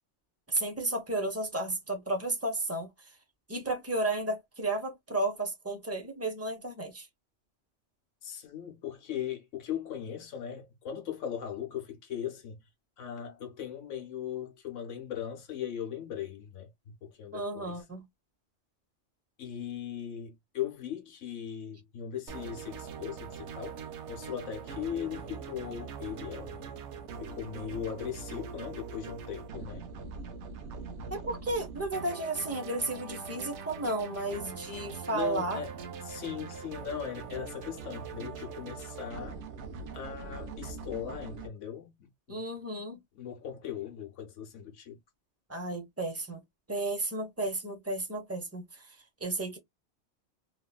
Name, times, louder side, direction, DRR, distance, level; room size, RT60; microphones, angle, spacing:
voice 1, 0.5-2.9 3.5-7.1 17.3-18.0 31.1-35.6 42.3-43.0 45.5-46.4 46.7-48.9 49.2-49.6, right 2 dB, 15° right, 0.8 m, -33 dB
voice 2, 8.2-12.7 13.0-17.8 19.4-26.7 27.2-29.9 34.9-35.8 36.0-39.4 39.9-42.4 43.2-45.0, left 9 dB, 80° left, 1.2 m, -39 dB
sound 1, 22.3-41.5, right 5 dB, 70° right, 0.9 m, -42 dB
3.1 x 2.4 x 2.3 m
omnidirectional pair, 1.2 m